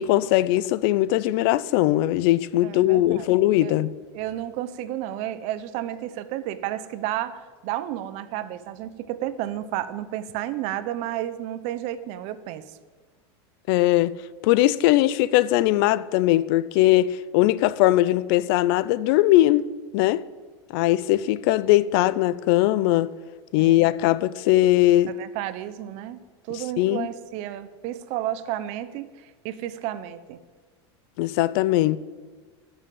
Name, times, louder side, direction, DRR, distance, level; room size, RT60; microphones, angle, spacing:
voice 1, 0.0-3.9 13.7-14.2 14.4-19.7 19.9-20.2 20.7-23.1 23.5-25.1 26.8-27.1 31.2-32.0, left 15 dB, 60° left, 0.5 m, -20 dB
voice 2, 2.6-3.3 3.6-3.7 4.1-12.8 23.6-23.9 25.1-30.4, right 12 dB, 50° right, 0.8 m, -32 dB
11.0 x 6.9 x 9.1 m
supercardioid pair, 145°, 14 cm